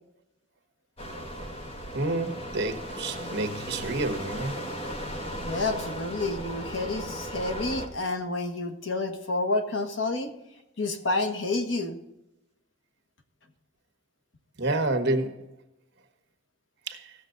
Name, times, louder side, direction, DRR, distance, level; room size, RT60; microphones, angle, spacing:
sound 1, 1.0-7.9, equal, 30° left, 1.4 m, -36 dB
voice 1, 1.9-4.6 14.6-15.5 16.9-17.1, right 2 dB, 60° right, 6 dB, 1.3 m, -29 dB
voice 2, 5.4-10.3 10.8-12.0, left 2 dB, 70° left, 5 dB, 1.3 m, -29 dB
16.5 x 7.0 x 3.9 m, 0.89 s
head